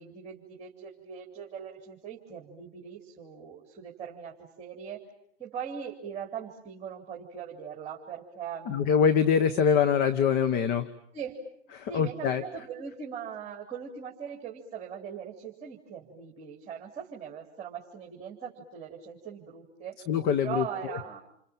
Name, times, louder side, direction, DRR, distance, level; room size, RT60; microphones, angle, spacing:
voice 1, 0.0-5.1 5.4-9.0 11.1-11.4 11.9-20.0 20.4-21.2, right 7 dB, 20° right, 0 dB, 4.0 m, -40 dB
voice 2, 8.7-10.9 11.7-12.4 20.1-20.6, left 7 dB, 25° left, 9 dB, 1.2 m, -24 dB
30.0 x 27.0 x 7.4 m, 0.71 s
hypercardioid pair, 125°, 36 cm